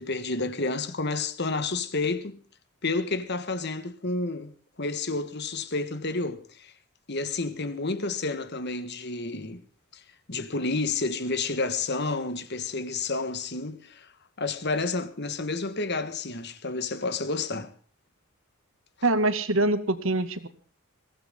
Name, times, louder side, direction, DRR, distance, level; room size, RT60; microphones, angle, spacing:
voice 1, 0.0-2.4 2.8-6.7 7.1-9.6 9.9-10.0 10.3-14.1 14.4-17.7, left 3 dB, 50° left, 1.6 m, -30 dB
voice 2, 19.0-20.5, right 2 dB, 65° right, 2.1 m, -24 dB
22.5 x 17.0 x 3.7 m
head